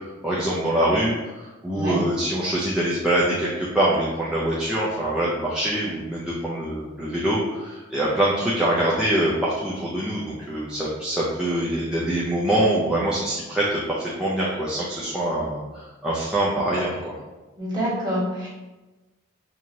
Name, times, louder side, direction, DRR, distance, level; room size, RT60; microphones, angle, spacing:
voice 1, 0.2-17.1, right 1 dB, 5° right, -8 dB, 0.4 m, -24 dB
voice 2, 17.6-18.5, equal, 20° right, -8 dB, 1.3 m, -26 dB
4.5 x 2.7 x 2.7 m, 1.1 s
head